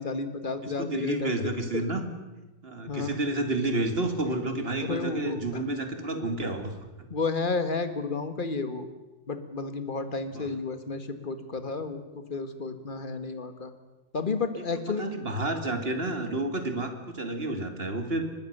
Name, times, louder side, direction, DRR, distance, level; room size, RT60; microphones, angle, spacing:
voice 1, 0.0-1.8 2.9-3.2 4.8-5.6 7.1-8.9 9.3-13.7 14.1-15.1, left 4 dB, 40° left, 10 dB, 1.8 m, -32 dB
voice 2, 0.6-2.0 2.6-6.7 10.3-10.5 15.0-18.3, right 2 dB, 50° right, 7 dB, 2.6 m, -30 dB
23.5 x 19.5 x 6.7 m, 1.1 s
omnidirectional pair, 1.3 m